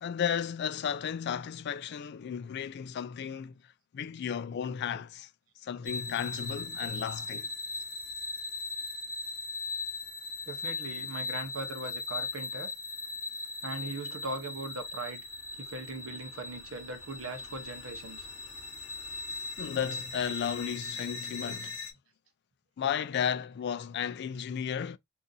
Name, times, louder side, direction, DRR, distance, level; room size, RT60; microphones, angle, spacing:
voice 1, 0.0-3.5 3.9-5.3 5.6-7.5 19.6-21.8 22.8-25.0, left 8 dB, 55° left, 0.3 m, -34 dB
sound 1, 5.8-21.9, left 3 dB, 75° left, 0.9 m, -39 dB
voice 2, 10.5-12.7 13.6-15.2 15.6-18.3, right 2 dB, 80° right, 0.8 m, -39 dB
2.7 x 2.5 x 3.7 m
head